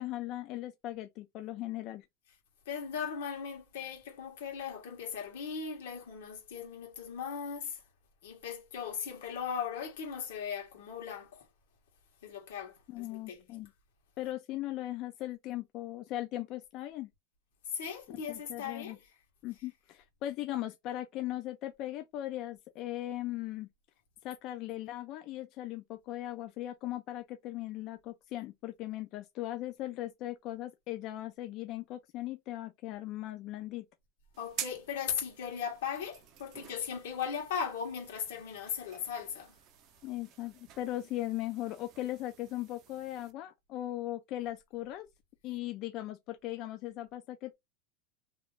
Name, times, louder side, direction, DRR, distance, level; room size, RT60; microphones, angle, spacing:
voice 1, 0.0-2.1 12.9-13.7 14.2-17.1 18.3-19.0 19.4-23.7 24.2-33.9 40.0-45.1 45.4-47.5, left 15 dB, 40° left, 0.3 m, -38 dB
voice 2, 2.6-7.8 8.2-11.5 12.2-13.5 17.7-19.1 34.4-39.5, left 7 dB, 90° left, 1.4 m, -38 dB
sound 1, 34.3-43.3, right 10 dB, 40° right, 0.6 m, -49 dB
3.0 x 2.4 x 3.2 m
supercardioid pair, 155°, 0 cm